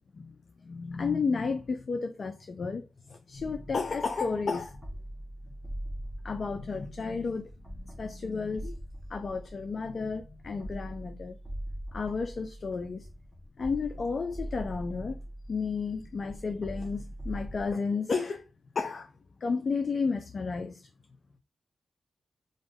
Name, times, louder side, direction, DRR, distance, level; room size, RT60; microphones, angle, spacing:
voice 1, 0.1-4.9 6.2-8.7 9.1-11.4 11.9-13.1 13.6-15.2 15.5-18.4 18.8-19.1 19.4-20.9, left 4 dB, 55° left, 0.3 m, -32 dB
sound 1, 3.3-17.7, equal, 20° right, 0.8 m, -42 dB
2.5 x 2.1 x 3.3 m
cardioid pair, 65°, 0 cm